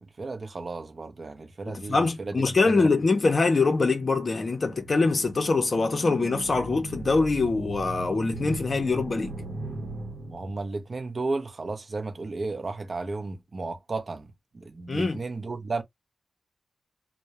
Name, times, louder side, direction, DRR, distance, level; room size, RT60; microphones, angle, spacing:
voice 1, 0.0-2.9 10.3-15.8, right 3 dB, 40° right, 0.5 m, -34 dB
voice 2, 1.7-9.3 14.9-15.2, left 3 dB, 40° left, 0.6 m, -24 dB
sound 1, 4.4-10.8, right 2 dB, 75° right, 0.8 m, -38 dB
2.3 x 2.0 x 2.8 m
wide cardioid pair, 130°, 0 cm